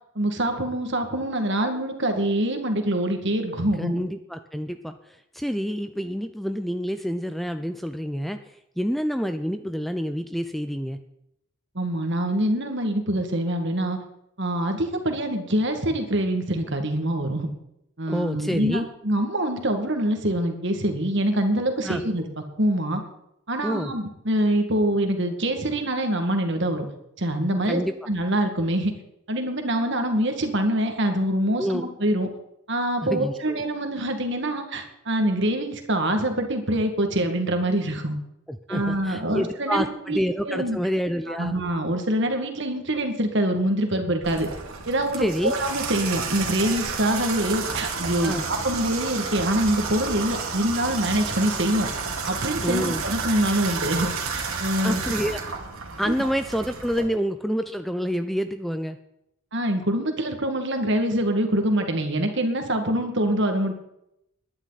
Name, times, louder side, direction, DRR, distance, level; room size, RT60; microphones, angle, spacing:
voice 1, 0.2-3.9 11.8-14.0 14.4-17.5 18.0-22.3 22.6-23.0 23.5-26.9 27.2-27.8 28.1-29.0 29.3-32.3 32.7-38.2 38.7-40.2 40.4-40.8 41.3-44.5 44.9-51.9 52.3-55.1 56.0-56.1 59.5-63.7, right 1 dB, 55° right, 5 dB, 2.0 m, -25 dB
voice 2, 3.8-11.0 18.1-18.9 21.8-22.0 23.6-23.9 27.6-27.9 31.6-31.9 33.1-33.6 38.5-41.6 45.2-45.5 48.2-48.4 52.6-53.0 54.8-55.4 56.0-59.0, equal, ahead, 9 dB, 0.5 m, -28 dB
Water tap faucet / Bathtub (filling or washing), 44.2-57.0, right 5 dB, 75° right, 2.5 m, -31 dB
21.0 x 11.0 x 4.1 m, 0.82 s
head